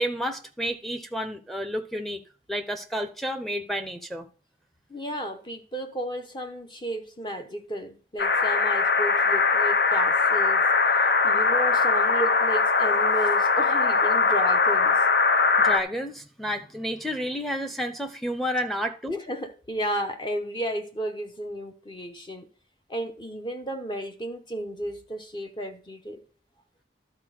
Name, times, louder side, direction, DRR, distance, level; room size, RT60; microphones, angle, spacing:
voice 1, 0.0-2.2 2.5-4.3 15.6-19.2, equal, ahead, 0.7 m, -30 dB
voice 2, 4.9-10.6 10.9-15.0 19.1-22.5 22.9-26.2, right 1 dB, 25° left, 0.9 m, -33 dB
sound 1, 8.2-15.8, left 4 dB, 55° left, 0.7 m, -21 dB
12.0 x 4.2 x 6.4 m
head